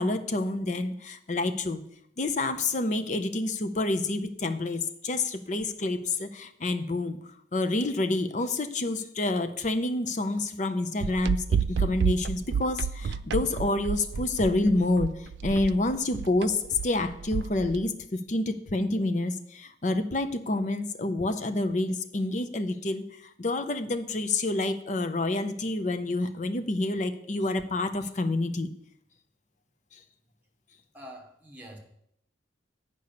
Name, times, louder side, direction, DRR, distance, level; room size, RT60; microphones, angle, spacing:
voice 1, 0.0-1.8 2.2-7.2 7.5-23.1 23.4-28.7, left 2 dB, 45° left, 10 dB, 0.6 m, -28 dB
sound 1, 11.0-17.8, right 6 dB, 70° right, 0.3 m, -30 dB
voice 2, 30.9-31.8, equal, 10° right, 0 dB, 1.4 m, -45 dB
8.4 x 5.3 x 6.7 m, 0.75 s
head